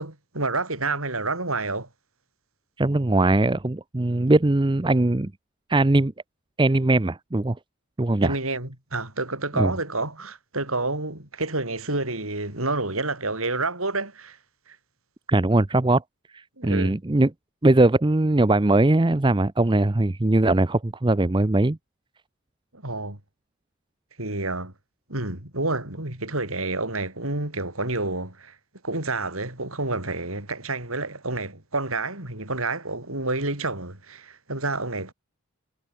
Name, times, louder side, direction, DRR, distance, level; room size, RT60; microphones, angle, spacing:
voice 1, 0.0-1.9 8.2-14.4 14.7-14.8 16.6-17.0 22.7-23.2 24.2-24.7 25.1-28.5 28.8-35.1, right 2 dB, 75° right, 6.2 m, -29 dB
voice 2, 2.8-5.3 5.7-6.1 6.6-7.6 8.0-8.4 9.6-9.7 15.3-16.0 16.6-17.3 17.6-21.8, right 2 dB, 20° right, 0.6 m, -20 dB
head